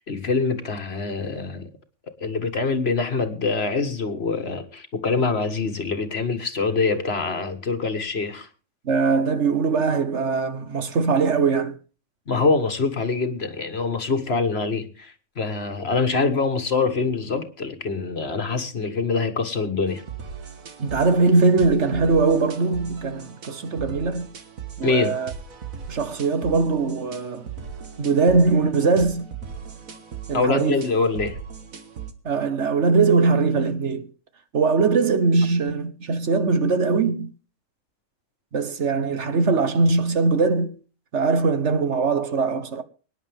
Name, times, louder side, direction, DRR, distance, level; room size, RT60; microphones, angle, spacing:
voice 1, 0.0-1.7 2.2-8.5 12.3-20.0 24.8-25.2 30.3-31.4, left 4 dB, 50° left, 1.7 m, -24 dB
voice 2, 8.8-11.8 20.8-24.3 24.8-25.3 25.9-27.4 28.0-29.3 30.3-30.8 32.2-34.1 34.5-37.3 38.5-40.7 41.1-42.8, right 4 dB, 60° right, 1.4 m, -21 dB
sound 1, 19.9-32.1, right 7 dB, 80° right, 1.9 m, -38 dB
24.0 x 10.5 x 3.5 m
omnidirectional pair, 1.4 m